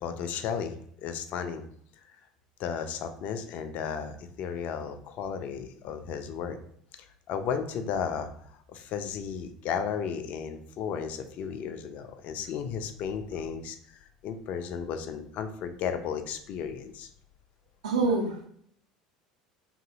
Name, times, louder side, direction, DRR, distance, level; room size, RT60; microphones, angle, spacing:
voice 1, 0.0-0.7 1.0-1.6 2.6-6.6 7.3-8.3 8.7-13.8 14.2-17.1, left 7 dB, 45° left, 8 dB, 0.3 m, -34 dB
voice 2, 17.8-18.5, right 3 dB, 65° right, 1 dB, 0.7 m, -26 dB
2.8 x 2.6 x 2.5 m, 0.66 s
figure-of-eight pair, 70°, 3 cm